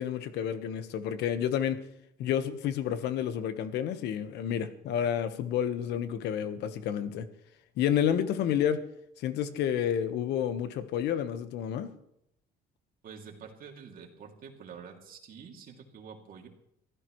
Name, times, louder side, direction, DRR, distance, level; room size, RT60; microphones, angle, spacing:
voice 1, 0.0-1.8 2.2-7.3 7.8-8.8 9.2-11.9, left 9 dB, 80° left, 10 dB, 1.3 m, -30 dB
voice 2, 13.0-16.5, right 6 dB, 55° right, 2 dB, 2.8 m, -47 dB
24.0 x 15.0 x 3.2 m, 0.80 s
cardioid pair, 110°, 17 cm